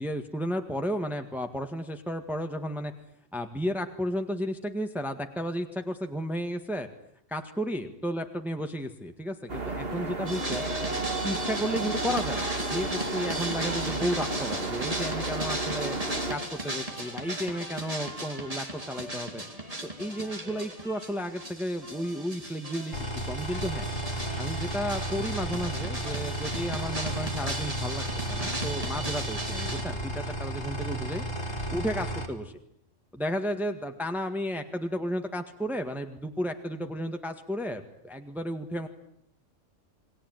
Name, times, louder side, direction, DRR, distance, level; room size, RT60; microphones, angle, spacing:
voice 1, 0.0-2.9 3.3-6.9 7.3-10.6 11.2-16.0 16.3-19.4 20.0-23.0 23.3-23.9 24.4-31.3 31.7-32.5 33.1-38.9, equal, ahead, 5 dB, 1.7 m, -33 dB
sound 1, 9.5-16.4, right 2 dB, 50° right, 2.5 m, -33 dB
sound 2, 10.3-29.8, right 1 dB, 25° right, 3.7 m, -36 dB
sound 3, 22.9-32.3, right 1 dB, 60° left, 4.5 m, -33 dB
29.0 x 21.5 x 9.3 m, 0.73 s
omnidirectional pair, 1.3 m